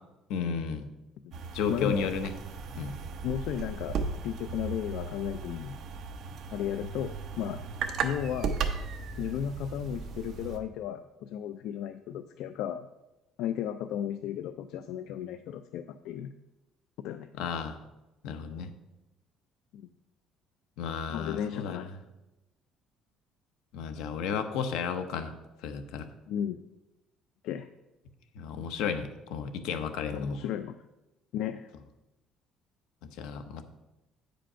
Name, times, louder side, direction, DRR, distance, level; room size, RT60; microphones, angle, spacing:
voice 1, 0.3-0.9 1.5-2.3 2.7-3.0 17.4-17.8 18.2-18.7 20.8-21.9 23.7-25.3 25.6-26.1 28.3-30.4 33.2-33.6, left 6 dB, 85° left, 9 dB, 0.8 m, -33 dB
sound 1, 1.3-10.6, right 5 dB, 45° right, 0.7 m, -36 dB
voice 2, 1.7-2.1 3.2-4.0 4.2-5.8 6.5-7.6 8.0-8.5 9.2-12.9 13.4-16.3 17.0-17.3 19.7-19.8 21.1-21.9 26.3-26.6 27.4-27.7 30.1-30.8 31.3-31.7, left 10 dB, 70° left, 10 dB, 0.3 m, -34 dB
8.7 x 5.2 x 5.6 m, 1.0 s
cardioid pair, 175°, 0 cm